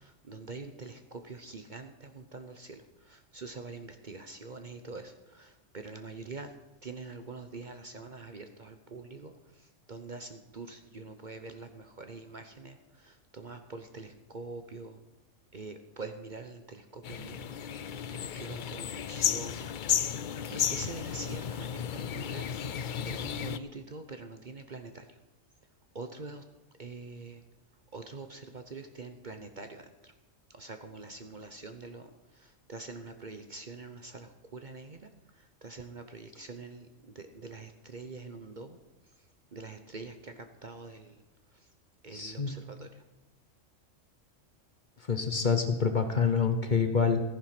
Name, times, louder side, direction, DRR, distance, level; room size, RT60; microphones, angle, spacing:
voice 1, 0.3-2.8 3.1-6.5 6.8-9.3 9.9-12.8 13.0-15.0 15.5-17.6 18.4-19.7 20.5-21.9 22.1-22.4 23.0-25.0 25.9-26.4 26.8-27.4 27.9-29.9 30.6-32.1 32.7-35.1 35.6-36.9 37.2-38.8 39.5-40.3 40.6-41.1 42.0-42.9, right 3 dB, 40° right, 7 dB, 0.9 m, -44 dB
sound 1, 17.0-23.6, left 8 dB, 60° left, 0.5 m, -33 dB
voice 2, 42.1-42.6 45.1-47.2, left 5 dB, 40° left, 7 dB, 1.1 m, -27 dB
14.5 x 10.0 x 6.0 m, 0.99 s
omnidirectional pair, 1.4 m